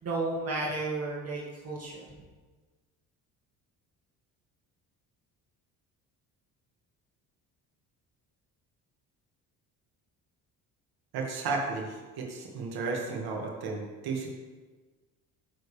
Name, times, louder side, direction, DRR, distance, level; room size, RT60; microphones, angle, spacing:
voice 1, 0.0-2.3, right 2 dB, 40° right, -5 dB, 2.3 m, -33 dB
voice 2, 11.1-14.3, right 4 dB, 70° right, 0 dB, 2.0 m, -33 dB
14.0 x 7.0 x 3.4 m, 1.3 s
supercardioid pair, 75°, 39 cm